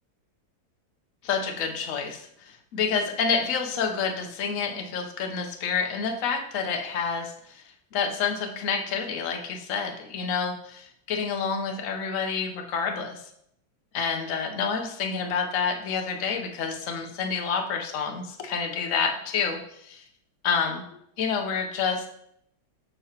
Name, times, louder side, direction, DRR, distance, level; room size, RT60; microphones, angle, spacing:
voice 1, 1.2-7.6 7.9-13.2 13.9-20.0 20.4-20.8 21.2-22.1, left 6 dB, 55° left, 4 dB, 0.9 m, -28 dB
6.8 x 5.7 x 2.9 m, 0.72 s
omnidirectional pair, 2.1 m